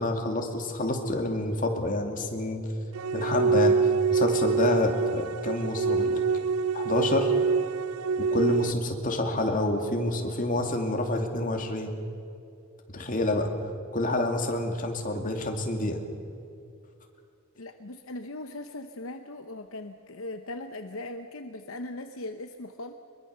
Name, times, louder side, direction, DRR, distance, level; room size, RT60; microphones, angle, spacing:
voice 1, 0.0-2.6 3.1-3.8 4.1-6.2 6.7-7.3 8.2-11.9 12.9-13.5 13.9-16.0, left 2 dB, 40° left, 3 dB, 2.5 m, -28 dB
sound 1, 2.9-8.7, right 5 dB, 80° right, 0.4 m, -25 dB
voice 2, 17.6-22.9, left 2 dB, 65° left, 7 dB, 0.9 m, -39 dB
23.0 x 22.5 x 6.9 m, 2.5 s
head